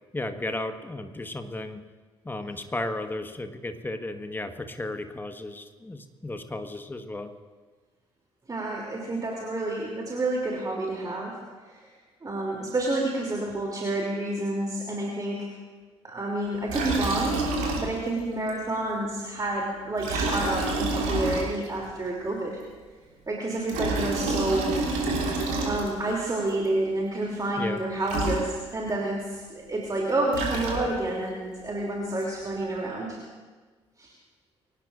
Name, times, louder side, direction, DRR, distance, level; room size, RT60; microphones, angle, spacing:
voice 1, 0.1-1.8 2.2-7.3 27.6-27.8, left 2 dB, 15° left, 7 dB, 1.5 m, -34 dB
voice 2, 8.5-11.4 11.7-11.9 12.2-15.5 16.0-17.4 17.7-22.5 23.3-24.8 25.6-33.2 34.0-34.1, right 2 dB, 25° right, -2 dB, 3.0 m, -29 dB
Liquid, 16.7-18.2 18.5-18.6 20.0-21.9 23.5-26.2 27.8-27.9 28.1-28.9 30.1-31.2, right 2 dB, 65° right, 3.2 m, -29 dB
24.5 x 18.5 x 2.6 m, 1.4 s
figure-of-eight pair, 45°, 14 cm